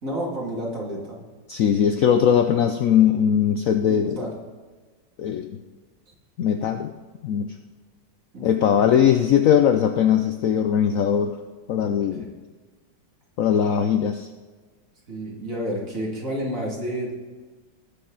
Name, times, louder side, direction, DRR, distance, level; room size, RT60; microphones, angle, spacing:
voice 1, 0.0-1.2 3.9-4.3 8.3-8.8 12.1-12.3 15.1-17.1, equal, 50° right, -3 dB, 2.8 m, -30 dB
voice 2, 1.5-4.3 5.2-5.6 6.4-6.9 7.2-7.5 8.4-11.4 11.7-12.3 13.4-14.3, left 8 dB, 70° left, 6 dB, 0.8 m, -20 dB
19.0 x 6.7 x 3.9 m, 1.4 s
omnidirectional pair, 1.9 m